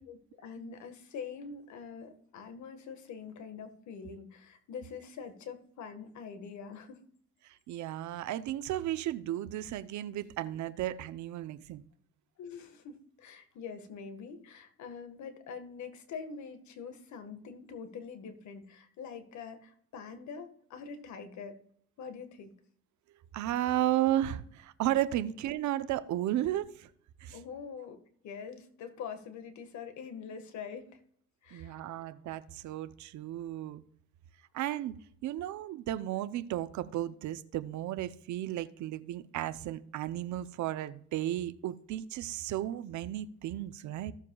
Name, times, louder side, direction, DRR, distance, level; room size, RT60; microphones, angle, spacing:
voice 1, 0.0-7.0 12.4-21.6 22.0-22.5 27.3-31.0 31.4-32.1, left 6 dB, 70° left, 1.6 m, -44 dB
voice 2, 7.7-11.8 23.3-26.9 27.2-27.4 31.5-33.8 34.5-35.0 35.2-44.1, right 13 dB, 75° right, 0.7 m, -34 dB
15.5 x 7.3 x 2.3 m
cardioid pair, 95°, 29 cm